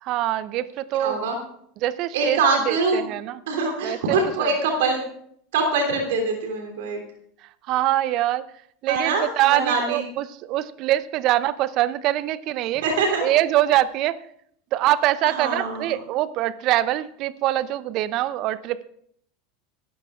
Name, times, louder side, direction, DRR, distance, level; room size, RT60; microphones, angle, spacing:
voice 1, 0.0-1.2 1.8-2.4 2.7-3.4 3.8-4.5 7.7-8.4 8.8-12.8 13.2-14.2 14.7-18.8, right 14 dB, 50° right, 17 dB, 0.7 m, -24 dB
voice 2, 0.9-1.4 2.1-3.0 3.5-5.0 5.5-7.0 8.9-10.0 12.8-13.2 15.3-16.0, right 3 dB, 70° right, 1 dB, 3.1 m, -24 dB
25.0 x 13.5 x 2.5 m, 0.69 s
hypercardioid pair, 80°, 0 cm